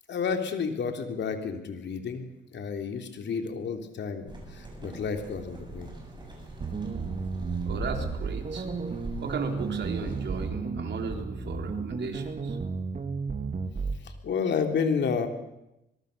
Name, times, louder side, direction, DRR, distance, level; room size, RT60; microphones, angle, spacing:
voice 1, 0.1-5.9 14.0-15.3, left 6 dB, 70° left, 6 dB, 3.4 m, -31 dB
sound 1, 4.3-10.5, right 1 dB, 25° right, 7.6 m, -41 dB
sound 2, 6.6-14.0, right 4 dB, 45° right, 3.1 m, -33 dB
voice 2, 7.7-8.7 9.2-12.6, right 5 dB, 65° right, 4 dB, 4.1 m, -36 dB
24.0 x 22.0 x 6.8 m, 0.89 s
cardioid pair, 85°, 19 cm